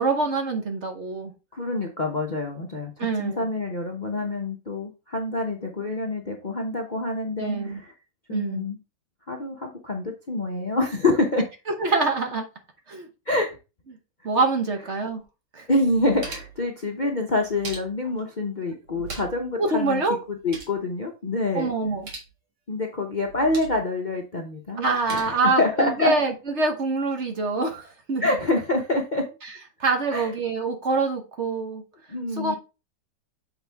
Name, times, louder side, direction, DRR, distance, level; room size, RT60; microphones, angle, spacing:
voice 1, 0.0-1.3 3.0-3.5 7.4-7.8 8.3-8.7 11.8-12.4 12.9-13.1 14.2-15.2 15.5-15.7 19.6-20.2 21.5-22.1 24.8-28.4 29.4-29.5 29.8-31.8 32.3-32.6, right 3 dB, 45° right, 4 dB, 1.1 m, -25 dB
voice 2, 1.5-7.9 8.3-8.8 9.3-11.5 13.3-13.5 15.7-20.0 20.3-21.7 22.7-24.8 25.1-26.1 28.2-29.2 30.1-30.3 32.1-32.6, left 2 dB, 40° left, 2 dB, 0.7 m, -26 dB
sound 1, 15.2-15.3 15.8-16.7 17.3-18.2 18.8-19.5 19.8-19.9 20.2-20.8 21.8-22.3 23.2-23.8 24.8-25.2, right 4 dB, 70° right, 2.5 m, -40 dB
7.9 x 4.5 x 3.4 m, 0.29 s
omnidirectional pair, 1.9 m